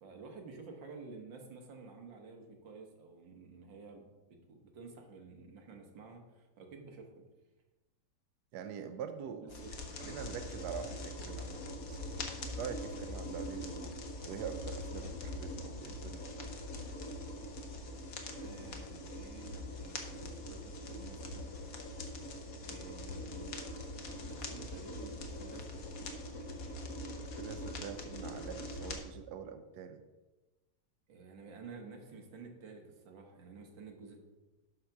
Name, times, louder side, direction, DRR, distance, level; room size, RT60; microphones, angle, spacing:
voice 1, 0.0-4.1 4.5-7.2 9.4-9.7 18.4-21.6 22.6-23.6 24.1-25.8 31.1-34.2, right 4 dB, 90° right, 3 dB, 2.1 m, -51 dB
voice 2, 8.5-9.4 10.0-12.0 12.5-14.0 14.3-16.3 27.4-30.0, right 7 dB, 70° right, 8 dB, 1.2 m, -44 dB
sound 1, 9.5-29.0, left 1 dB, 55° left, 1.4 m, -43 dB
11.5 x 4.0 x 5.8 m, 1.1 s
omnidirectional pair, 2.0 m